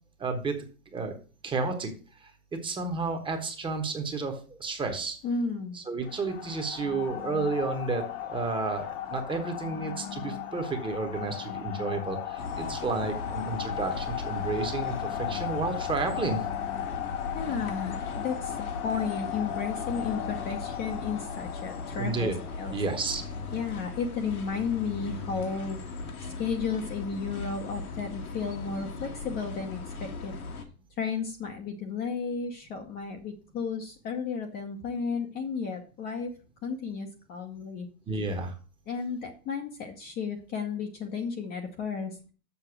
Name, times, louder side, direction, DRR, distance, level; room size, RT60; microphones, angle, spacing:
voice 1, 0.2-0.5 0.9-1.1 1.4-1.9 2.5-5.2 5.7-16.4 21.9-22.4 22.7-23.2 38.1-38.5, right 3 dB, 10° right, 4 dB, 1.1 m, -31 dB
voice 2, 5.2-5.8 17.3-18.6 18.8-22.3 22.6-22.7 23.5-25.8 26.4-30.3 31.0-36.3 36.6-37.9 38.9-42.3, left 5 dB, 20° left, 3 dB, 0.8 m, -33 dB
sound 1, 6.0-23.7, left 11 dB, 40° left, 1.2 m, -37 dB
sound 2, 12.4-30.6, left 3 dB, 75° left, 1.9 m, -39 dB
7.1 x 5.7 x 5.9 m, 0.37 s
hypercardioid pair, 130°, 44 cm